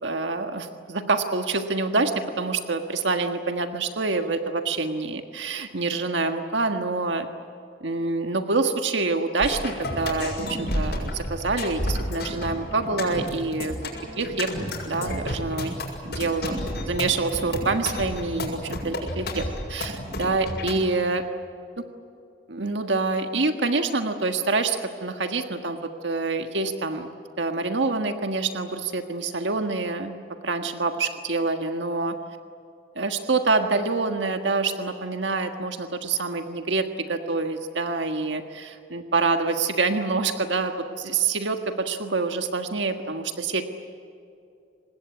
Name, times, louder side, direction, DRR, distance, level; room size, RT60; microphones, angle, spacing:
voice 1, 0.0-7.3 7.8-13.8 14.2-14.5 14.9-15.8 16.0-19.4 19.7-21.3 22.5-27.1 27.4-30.1 30.4-32.2 32.9-43.6, right 3 dB, 80° right, 6 dB, 1.6 m, -26 dB
sound 1, 9.4-20.8, left 1 dB, 65° left, 6.8 m, -31 dB
25.5 x 20.0 x 9.7 m, 2.5 s
head